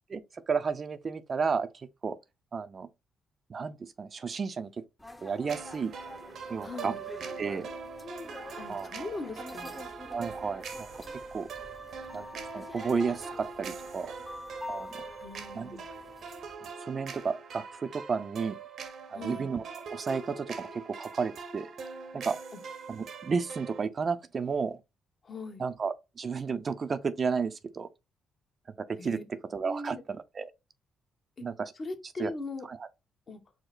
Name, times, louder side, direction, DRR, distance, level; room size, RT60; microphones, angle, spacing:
voice 1, 0.5-2.2 2.5-2.9 3.5-4.7 5.2-5.9 6.5-6.9 7.4-7.7 8.7-9.1 10.1-11.0 11.3-11.5 12.1-12.3 12.5-14.1 14.7-15.0 15.5-15.7 16.8-18.6 19.1-19.6 19.9-21.7 22.1-22.4 22.9-24.8 25.6-27.9 28.8-30.5 31.4-31.7 32.2-32.3 32.7-32.9, right 5 dB, 40° right, 0.4 m, -32 dB
sound 1, 5.0-16.5, left 1 dB, 10° left, 0.7 m, -47 dB
sound 2, 5.5-23.8, right 5 dB, 65° right, 0.8 m, -42 dB
voice 2, 6.6-7.0 8.6-9.8 15.2-15.9 19.1-19.5 22.5-22.6 25.2-25.6 29.0-29.2 29.6-30.0 31.8-32.7 33.3-33.4, left 3 dB, 40° left, 0.9 m, -40 dB
4.9 x 2.0 x 3.9 m
cardioid pair, 90°, 0 cm